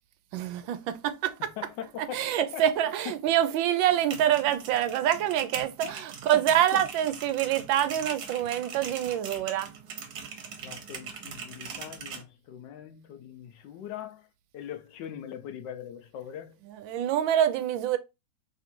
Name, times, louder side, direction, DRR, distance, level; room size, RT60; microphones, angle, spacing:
voice 1, 0.3-1.5 2.1-9.7 16.7-18.0, right 11 dB, 80° right, 1.3 m, -26 dB
voice 2, 1.6-2.6 3.0-3.1 5.8-5.9 6.3-6.8 10.6-14.3 14.5-16.6, left 10 dB, 75° left, 1.2 m, -41 dB
sound 1, 3.9-12.2, right 6 dB, 65° right, 1.4 m, -41 dB
3.5 x 2.5 x 4.3 m
omnidirectional pair, 2.1 m